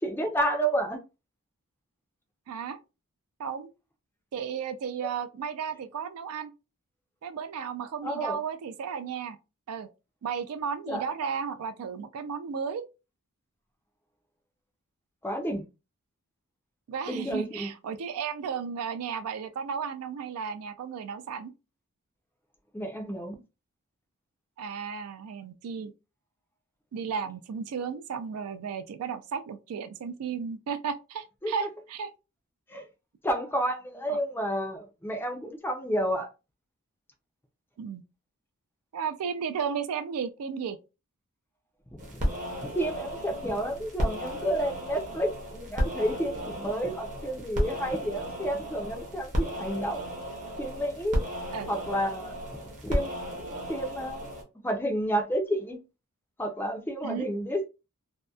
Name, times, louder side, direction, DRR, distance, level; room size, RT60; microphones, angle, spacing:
voice 1, 0.0-1.0 8.0-8.4 10.9-11.0 15.2-15.6 17.1-17.7 22.7-23.4 31.4-31.7 32.7-32.9 33.2-36.3 41.9-42.3 42.6-50.0 50.6-51.3 51.7-53.2 53.7-54.3 54.6-55.8 56.4-57.7, right 1 dB, 10° left, 0.4 m, -30 dB
voice 2, 2.5-2.8 3.4-3.7 4.3-6.5 7.2-9.4 9.7-9.9 10.2-12.8 16.9-21.5 24.6-25.9 26.9-32.1 34.1-34.2 37.8-38.0 38.9-40.8 51.5-51.7 57.0-57.3, right 6 dB, 75° right, 0.3 m, -34 dB
sound 1, 42.0-54.4, equal, 35° right, 0.7 m, -34 dB
2.7 x 2.1 x 2.3 m
head